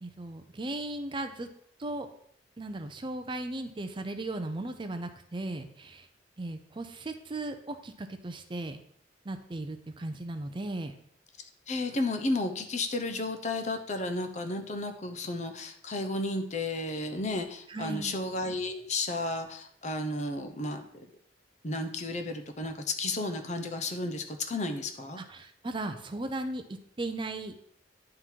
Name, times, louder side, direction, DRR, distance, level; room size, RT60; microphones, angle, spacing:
voice 1, 0.0-1.5 1.8-2.1 2.6-6.1 6.4-8.8 9.2-10.9 17.7-18.1 25.2-27.7, right 2 dB, 25° right, 7 dB, 0.5 m, -37 dB
voice 2, 11.7-21.1 21.6-25.2, left 2 dB, 40° left, 6 dB, 0.8 m, -33 dB
9.9 x 3.8 x 4.5 m, 0.67 s
head